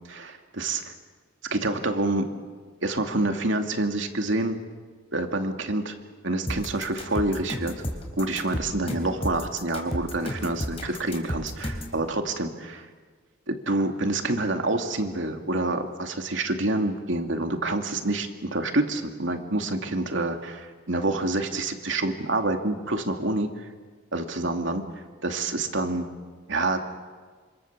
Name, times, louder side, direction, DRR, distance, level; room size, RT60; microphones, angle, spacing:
voice 1, 0.1-0.9 1.5-2.3 2.8-4.6 5.1-5.9 6.2-7.7 8.2-12.9 13.5-23.7 24.1-24.8 25.2-26.1 26.5-27.0, right 2 dB, 70° right, 4 dB, 2.5 m, -27 dB
sound 1, 6.5-12.0, equal, 30° left, 4.0 m, -32 dB
27.0 x 26.5 x 7.4 m, 1.5 s
head